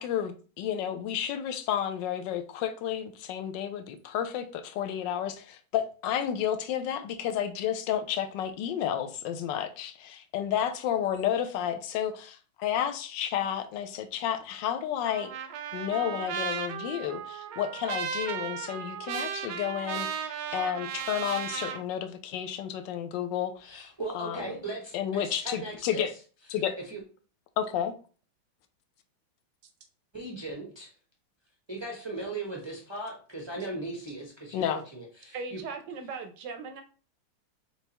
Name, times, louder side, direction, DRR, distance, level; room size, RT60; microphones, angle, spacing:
voice 1, 0.0-15.3 15.7-24.4 24.9-26.1 26.5-26.7 27.6-27.9 34.5-34.8, left 9 dB, 70° left, 8 dB, 1.2 m, -31 dB
Trumpet, 15.0-21.8, right 8 dB, 90° right, 1.5 m, -35 dB
voice 2, 23.6-26.1 26.9-27.0 30.1-30.9 31.7-35.6, right 2 dB, 45° right, -2 dB, 0.3 m, -38 dB
voice 3, 35.3-36.8, right 4 dB, 70° right, 7 dB, 1.1 m, -38 dB
4.6 x 4.1 x 2.9 m, 0.38 s
omnidirectional pair, 2.3 m